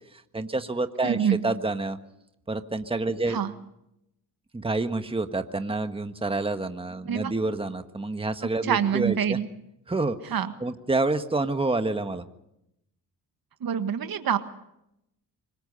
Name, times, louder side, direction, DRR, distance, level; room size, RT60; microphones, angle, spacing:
voice 1, 0.3-2.0 2.5-3.4 4.5-9.4 9.9-10.3 10.6-12.2, right 2 dB, 15° right, 8 dB, 1.6 m, -28 dB
voice 2, 1.0-1.4 3.3-3.5 7.1-7.3 8.6-9.5 10.3-10.5 13.6-14.4, right 8 dB, 55° right, 9 dB, 1.7 m, -25 dB
25.5 x 20.5 x 5.6 m, 0.81 s
supercardioid pair, 60°, 41 cm